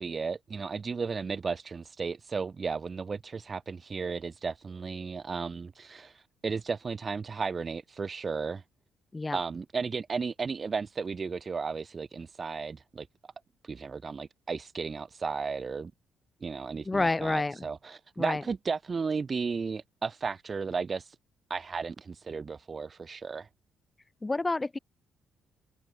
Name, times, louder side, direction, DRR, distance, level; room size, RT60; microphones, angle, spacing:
voice 1, 0.0-8.6 9.3-13.1 13.6-15.9 16.4-21.2 21.5-23.5, right 5 dB, 35° right, 0.6 m, -34 dB
voice 2, 16.8-17.7 18.2-18.4 24.2-24.8, left 2 dB, 20° left, 2.1 m, -29 dB
cardioid pair, 90°, 0 cm